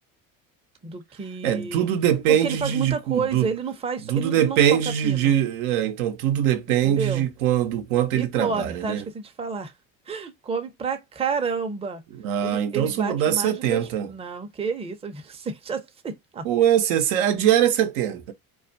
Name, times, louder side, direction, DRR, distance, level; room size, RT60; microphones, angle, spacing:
voice 1, 0.8-1.9 2.3-4.6 5.0-5.4 6.7-7.3 8.1-9.7 10.1-12.0 12.4-16.5, right 5 dB, 15° right, 0.5 m, -30 dB
voice 2, 1.4-3.5 4.1-9.0 12.2-14.1 16.4-18.3, right 10 dB, 80° right, 0.7 m, -22 dB
2.3 x 2.2 x 2.5 m
hypercardioid pair, 70°, 42 cm